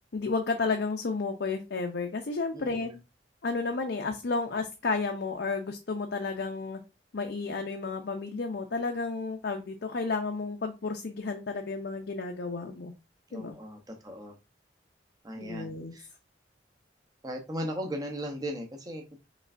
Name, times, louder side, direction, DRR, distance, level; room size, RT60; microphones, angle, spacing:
voice 1, 0.1-2.9 3.4-6.8 7.1-12.9 13.3-13.6 15.4-15.9, left 4 dB, 65° left, 4 dB, 0.5 m, -32 dB
voice 2, 2.5-3.0 13.3-14.4 15.2-16.1 17.2-19.0, equal, 20° right, 2 dB, 0.8 m, -37 dB
5.1 x 3.2 x 2.5 m, 0.29 s
head